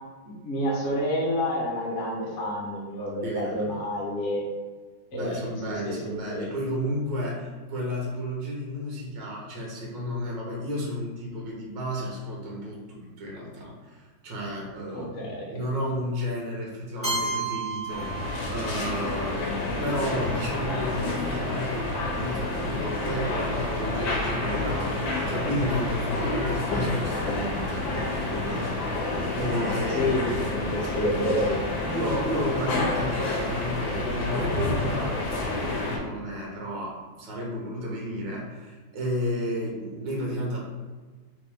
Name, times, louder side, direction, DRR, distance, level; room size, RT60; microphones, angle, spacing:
voice 1, 0.2-4.4 5.1-5.3 5.6-6.5 14.9-15.6 29.9-31.5, left 1 dB, 50° left, -4 dB, 1.1 m, -29 dB
voice 2, 3.2-3.8 5.1-27.9 28.1-28.7 29.3-30.9 31.9-40.6, equal, 70° right, -2 dB, 1.7 m, -32 dB
Keyboard (musical), 17.0-19.0, right 3 dB, 15° left, 0.5 m, -31 dB
sound 1, 17.9-36.0, left 2 dB, 90° left, 1.6 m, -29 dB
4.2 x 3.2 x 3.5 m, 1.3 s
omnidirectional pair, 2.1 m